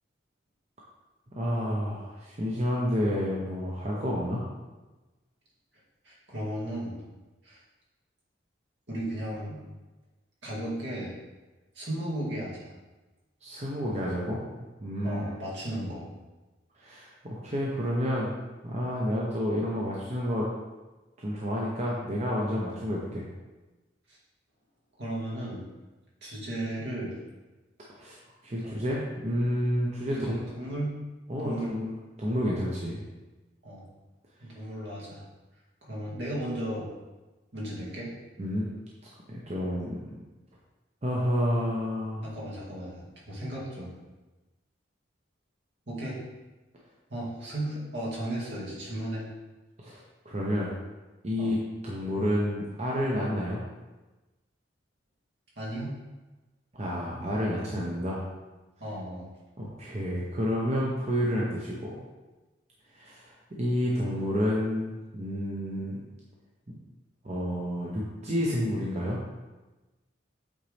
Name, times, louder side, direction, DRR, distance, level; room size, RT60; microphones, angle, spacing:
voice 1, 1.3-4.4 13.4-14.4 14.8-15.2 16.8-18.3 18.6-20.5 21.2-23.2 28.0-28.2 28.4-30.4 31.3-33.0 38.4-38.7 39.3-40.0 41.0-42.2 49.8-50.8 51.2-51.6 51.8-53.6 56.7-58.2 59.6-62.0 62.9-66.0 66.7-66.8 67.2-69.2, equal, 35° right, -4 dB, 0.8 m, -30 dB
voice 2, 6.0-7.0 7.4-7.6 8.9-9.6 10.4-11.2 11.7-12.7 15.0-16.1 25.0-25.6 26.2-27.1 28.6-28.8 30.1-30.9 31.4-31.7 33.6-33.9 34.4-35.2 35.8-36.9 37.5-38.1 42.2-43.9 45.9-46.2 47.1-49.2 51.4-51.5 55.6-55.9 58.8-59.3, right 1 dB, 65° right, -5 dB, 2.0 m, -35 dB
8.6 x 4.0 x 3.4 m, 1.1 s
head